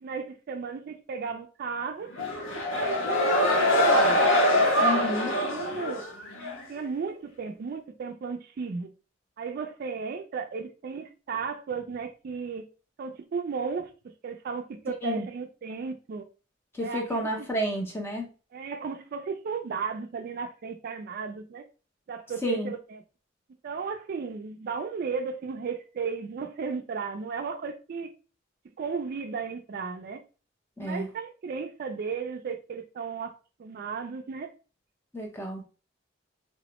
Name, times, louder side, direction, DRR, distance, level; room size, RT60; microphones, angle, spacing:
voice 1, 0.0-2.1 2.6-4.3 5.2-6.1 6.7-8.9 9.4-12.6 13.0-16.3 16.8-17.5 18.5-21.7 22.1-23.0 23.6-28.1 28.6-30.2 30.8-34.5, right 5 dB, 50° right, 0.3 m, -35 dB
sound 1, 2.1-6.6, left 1 dB, 90° left, 0.7 m, -24 dB
voice 2, 4.8-5.3 15.0-15.2 16.7-18.3 22.4-22.7 30.8-31.1 35.1-35.6, left 1 dB, 10° left, 0.6 m, -30 dB
3.4 x 2.0 x 2.9 m
head